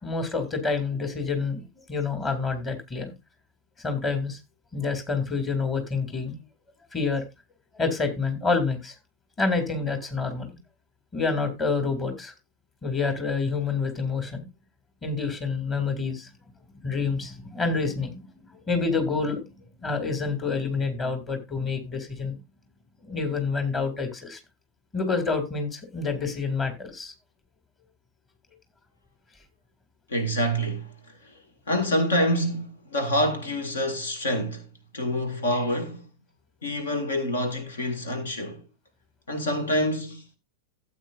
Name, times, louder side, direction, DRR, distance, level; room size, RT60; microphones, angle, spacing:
voice 1, 0.0-1.6 1.9-3.1 3.8-4.4 4.7-6.4 6.9-7.2 7.7-8.9 9.4-10.5 11.1-12.3 12.8-14.4 15.0-16.3 16.8-19.4 19.8-22.4 23.0-24.4 24.9-27.1, left 4 dB, 20° left, 2.5 m, -28 dB
voice 2, 30.1-31.4 31.7-34.7 34.9-36.0 36.6-38.6 39.3-40.4, equal, 70° left, 2.1 m, -27 dB
14.5 x 8.5 x 2.5 m
figure-of-eight pair, 90°, 0 cm